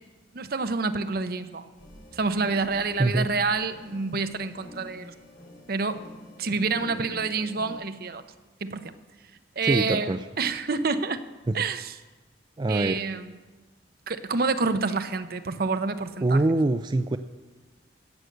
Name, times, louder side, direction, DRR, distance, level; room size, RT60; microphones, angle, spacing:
voice 1, 0.3-1.7 2.1-5.1 5.7-6.0 6.4-8.2 8.6-8.9 9.6-11.2 11.5-11.9 12.7-13.3 14.1-16.4, right 4 dB, 55° right, 10 dB, 0.7 m, -28 dB
sound 1, 1.8-7.8, left 1 dB, 85° left, 2.6 m, -47 dB
voice 2, 9.6-10.3 11.5-11.6 12.6-13.0 16.2-17.2, right 2 dB, 25° right, 8 dB, 0.3 m, -24 dB
16.0 x 6.6 x 7.8 m, 1.3 s
head